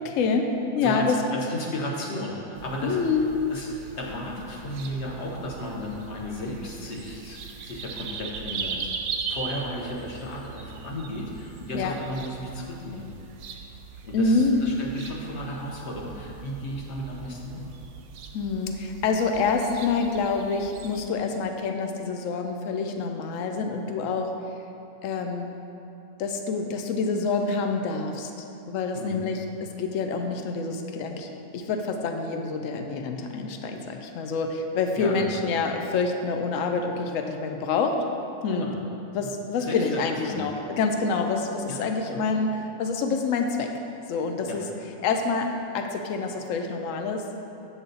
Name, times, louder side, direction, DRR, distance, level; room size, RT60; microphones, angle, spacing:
voice 1, 0.0-1.2 2.8-3.3 11.7-11.9 14.1-14.6 18.3-24.3 25.0-25.5 26.2-28.3 28.7-38.0 38.4-38.7 39.1-43.7 44.1-44.6 45.0-47.2, left 4 dB, 70° left, 4 dB, 0.9 m, -27 dB
voice 2, 0.8-3.0 3.5-8.9 9.3-13.1 14.0-17.7 28.9-29.2 35.0-35.3 38.5-38.8 39.2-39.3 39.6-40.5 41.7-42.2 44.5-44.6, left 1 dB, 50° left, -2 dB, 1.2 m, -34 dB
sound 1, 2.6-21.0, right 6 dB, 90° right, 1.1 m, -40 dB
7.8 x 6.2 x 3.9 m, 2.9 s
omnidirectional pair, 1.6 m